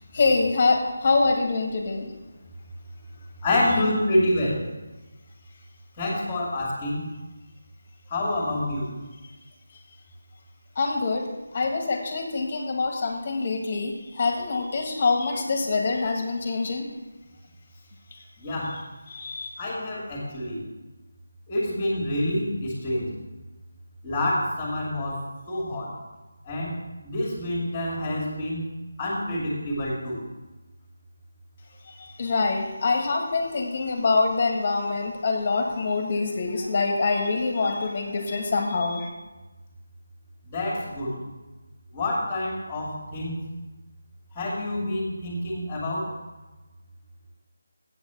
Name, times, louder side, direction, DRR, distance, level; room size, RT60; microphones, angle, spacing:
voice 1, 0.1-2.1 9.7-9.8 10.7-17.0 18.1-18.2 19.1-19.5 31.8-39.1, left 3 dB, 40° left, 3 dB, 1.6 m, -25 dB
voice 2, 3.4-4.6 6.0-7.0 8.1-8.9 18.4-18.8 19.6-20.6 21.5-23.1 24.0-26.0 26.4-26.8 27.0-28.6 29.0-30.2 40.5-41.2 41.9-43.3 44.3-46.1, left 1 dB, 20° left, -5 dB, 2.4 m, -27 dB
8.1 x 7.2 x 6.9 m, 1.1 s
figure-of-eight pair, 165°, 0 cm